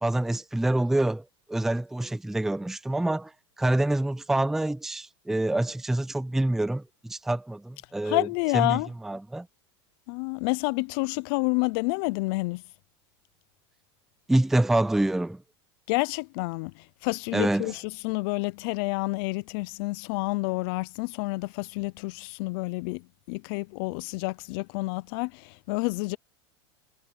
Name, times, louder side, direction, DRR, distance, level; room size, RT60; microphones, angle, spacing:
voice 1, 0.0-3.3 3.6-8.3 8.5-9.5 14.3-15.4 17.3-17.7, right 1 dB, 5° right, 0.4 m, -26 dB
voice 2, 8.0-8.9 10.1-12.6 15.9-26.2, left 26 dB, 60° left, 0.6 m, -29 dB
supercardioid pair, 130°, 14 cm